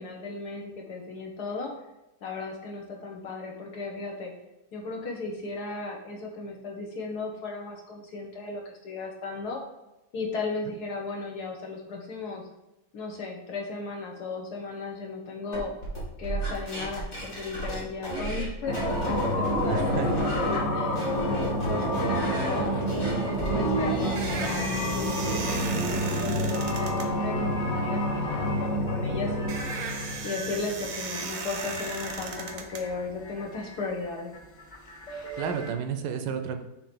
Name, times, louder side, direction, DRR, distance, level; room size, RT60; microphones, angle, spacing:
voice 1, 0.0-1.7 2.2-4.3 4.7-9.6 10.1-12.4 12.9-15.7 16.2-22.9 23.5-29.5 30.2-34.3, left 3 dB, 65° left, 0 dB, 1.6 m, -36 dB
sound 1, 15.5-18.5 18.7-20.6 20.9-24.6, equal, 45° left, 2.5 m, -31 dB
sound 2, 18.7-35.7, equal, 30° left, 1.1 m, -29 dB
voice 2, 19.7-20.2 35.4-36.6, right 7 dB, 80° right, 7 dB, 1.3 m, -31 dB
sound 3, 23.6-33.5, right 5 dB, 60° right, 1.0 m, -38 dB
6.9 x 3.0 x 5.2 m, 0.97 s
omnidirectional pair, 1.9 m